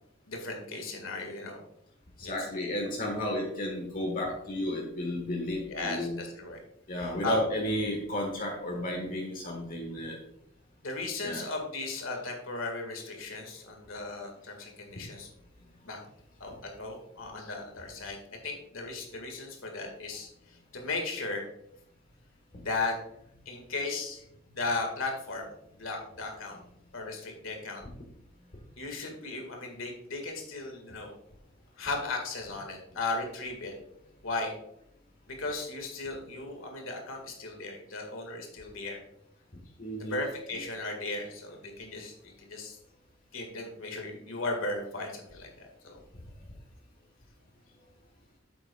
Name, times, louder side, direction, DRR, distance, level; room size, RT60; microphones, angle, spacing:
voice 1, 0.3-1.6 2.2-2.3 5.7-6.6 7.0-7.4 10.8-15.3 15.8-16.0 16.4-18.2 18.4-21.5 22.6-23.0 23.5-24.2 24.5-26.6 26.9-27.8 28.8-31.1 31.8-33.7 34.2-34.5 35.3-39.0 40.0-42.8 43.3-46.0, left 3 dB, 85° left, 3 dB, 1.9 m, -36 dB
voice 2, 2.2-6.2 6.9-10.2 11.2-11.4 39.8-40.2 40.5-40.6, left 1 dB, 45° left, 0 dB, 1.4 m, -33 dB
9.0 x 7.8 x 2.3 m, 0.76 s
head